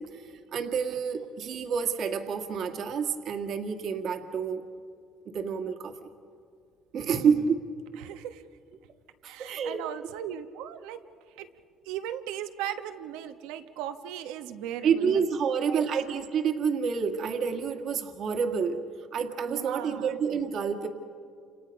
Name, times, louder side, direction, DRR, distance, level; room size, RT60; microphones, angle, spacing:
voice 1, 0.0-4.6 5.3-5.9 6.9-7.6 9.2-9.8 14.8-18.8 19.1-20.9, right 6 dB, 60° right, 4 dB, 1.9 m, -28 dB
voice 2, 7.0-7.5 8.0-8.5 9.3-11.0 11.4-11.5 11.8-15.2 15.5-15.8 19.5-20.1, right 10 dB, 85° right, 8 dB, 1.2 m, -38 dB
29.0 x 28.0 x 5.3 m, 2.2 s
supercardioid pair, 90°, 0 cm